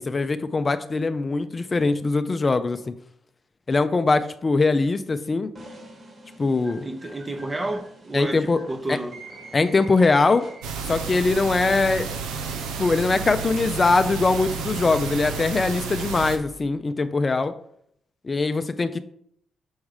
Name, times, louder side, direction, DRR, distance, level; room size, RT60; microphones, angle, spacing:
voice 1, 0.0-2.9 3.7-5.5 6.4-6.9 8.1-8.6 8.9-9.0 9.5-10.5 10.9-12.1 12.8-17.5 18.2-19.0, left 3 dB, 35° left, 0.4 m, -22 dB
sound 1, 5.6-11.0, right 2 dB, 50° right, 1.8 m, -45 dB
voice 2, 6.8-9.2, right 2 dB, 30° right, 0.7 m, -31 dB
sound 2, 10.6-16.4, right 5 dB, 90° right, 0.6 m, -31 dB
6.3 x 3.5 x 4.8 m
supercardioid pair, 55°, 0 cm